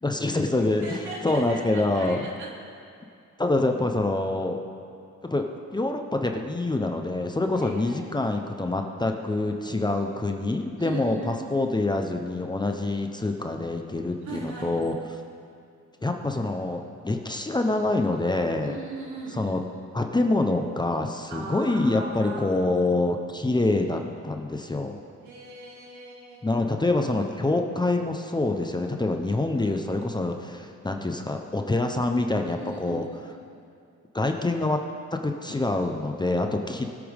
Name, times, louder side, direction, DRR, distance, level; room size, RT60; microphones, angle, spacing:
voice 1, 0.0-2.3 3.4-4.6 5.2-15.0 16.0-18.8 19.3-19.6 19.9-25.0 26.4-33.0 34.1-34.8 35.1-36.9, left 2 dB, 15° left, 4 dB, 0.9 m, -26 dB
voice 2, 0.6-2.5 7.5-8.0 10.8-11.5 14.2-14.9 18.6-19.4 21.3-23.0 25.2-26.6 29.6-29.8 32.4-33.3, right 3 dB, 70° right, -4 dB, 3.2 m, -39 dB
21.0 x 8.5 x 3.6 m, 2.4 s
cardioid pair, 90°, 30 cm